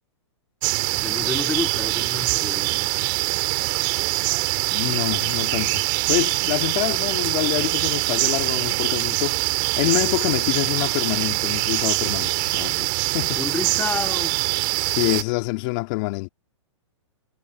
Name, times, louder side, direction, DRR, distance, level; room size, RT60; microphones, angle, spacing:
sound 1, 0.6-15.2, right 27 dB, 45° right, 3.0 m, -23 dB
voice 1, 1.0-3.3 13.4-14.3, left 5 dB, 10° left, 3.9 m, -30 dB
voice 2, 4.7-5.8 6.1-13.4 14.8-16.3, left 26 dB, 45° left, 2.8 m, -26 dB
hypercardioid pair, 120°, 15 cm